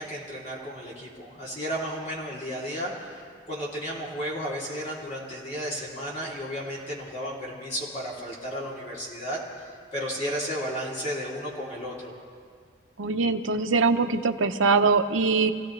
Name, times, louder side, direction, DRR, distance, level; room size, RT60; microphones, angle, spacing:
voice 1, 0.0-3.2 3.5-9.4 9.9-12.1, equal, 35° left, -5 dB, 3.0 m, -33 dB
voice 2, 13.0-15.5, right 4 dB, 85° right, 8 dB, 0.8 m, -22 dB
26.5 x 16.5 x 3.3 m, 2.1 s
head